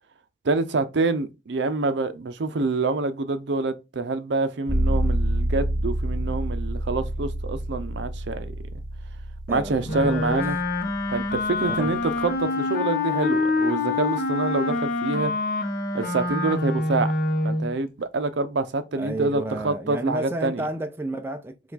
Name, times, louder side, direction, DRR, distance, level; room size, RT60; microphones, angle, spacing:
voice 1, 0.4-8.5 9.5-10.6 11.1-15.3 15.9-17.1 17.4-20.6, right 3 dB, 65° right, 0.5 m, -26 dB
sound 1, 4.7-12.4, right 1 dB, 50° right, 1.8 m, -28 dB
voice 2, 9.5-10.5 11.7-11.9 18.9-21.7, right 1 dB, 10° right, 0.3 m, -31 dB
Wind instrument woodwind instrument, 9.8-17.7, left 3 dB, 50° left, 0.7 m, -26 dB
4.6 x 2.3 x 3.9 m
head